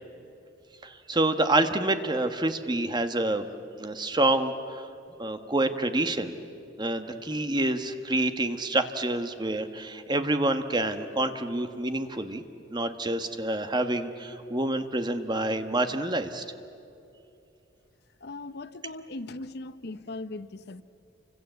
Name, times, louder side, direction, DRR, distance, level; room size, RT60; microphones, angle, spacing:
voice 1, 0.8-3.4 3.8-4.9 5.2-6.3 6.8-12.4 12.7-16.4, right 2 dB, 25° right, 1.3 m, -27 dB
voice 2, 18.2-20.8, left 2 dB, 55° left, 0.8 m, -39 dB
28.5 x 25.5 x 8.1 m
head